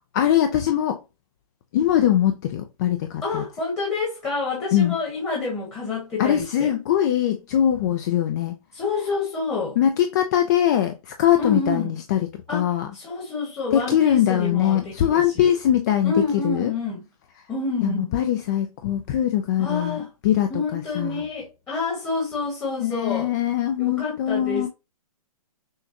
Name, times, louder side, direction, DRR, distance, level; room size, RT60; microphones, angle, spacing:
voice 1, 0.1-1.0 1.7-3.4 4.7-5.0 6.2-8.6 9.8-12.9 13.7-16.7 17.8-21.2 22.8-24.7, left 11 dB, 30° left, 0.4 m, -22 dB
voice 2, 3.2-6.7 8.7-9.8 11.4-11.9 12.5-15.5 16.0-17.0 17.5-18.1 19.6-20.1 20.5-23.3 23.8-24.7, left 3 dB, 15° left, 1.3 m, -28 dB
6.3 x 2.2 x 2.8 m
hypercardioid pair, 155°, 19 cm